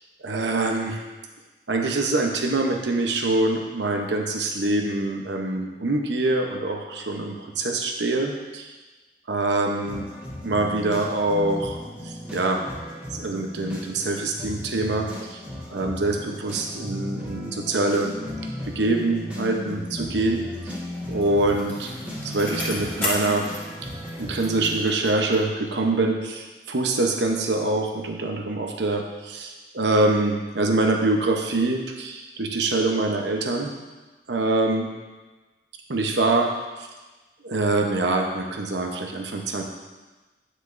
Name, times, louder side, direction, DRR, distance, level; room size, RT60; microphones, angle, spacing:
voice 1, 0.2-1.0 1.7-8.7 9.3-10.0 10.4-11.8 12.0-12.6 13.1-15.4 15.7-18.1 18.7-20.7 21.1-21.9 22.2-23.5 24.2-33.7 34.3-34.9 35.9-36.5 37.4-39.6, right 2 dB, 80° right, 2 dB, 0.9 m, -24 dB
sound 1, 9.8-24.8, left 1 dB, 5° right, 1.4 m, -36 dB
Bicycle, 20.7-25.6 25.9-26.0, left 1 dB, 10° left, 1.9 m, -34 dB
9.8 x 6.5 x 2.6 m, 1.2 s
head